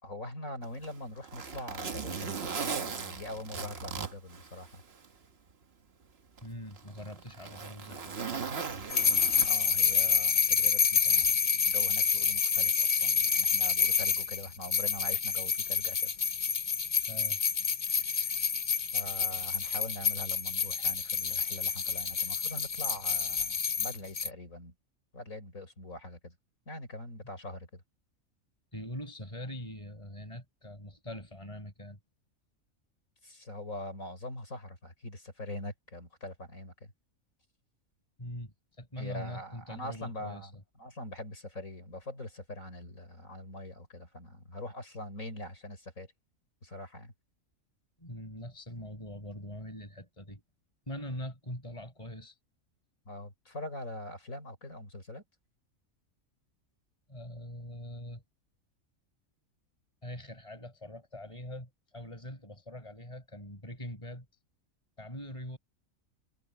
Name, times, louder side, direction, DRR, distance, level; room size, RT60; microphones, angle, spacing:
voice 1, 0.0-4.8 9.3-16.2 17.8-18.4 18.9-24.7 25.1-26.4 26.7-27.8 33.2-36.7 39.0-40.5 40.8-46.1 46.6-47.1 53.1-55.2, left 1 dB, 75° left, 6.2 m, -43 dB
Zipper (clothing), 0.6-5.1 5.5-5.6 6.4-9.8 11.0-11.2, right 5 dB, 50° right, 1.4 m, -38 dB
voice 2, 6.4-8.5 17.1-17.4 28.7-32.0 38.2-40.6 48.0-50.4 50.9-52.4 57.1-58.2 60.0-64.3 65.0-65.6, left 1 dB, 20° left, 6.3 m, -43 dB
sound 1, 8.9-24.3, left 6 dB, 40° left, 0.9 m, -28 dB
omnidirectional pair, 1.4 m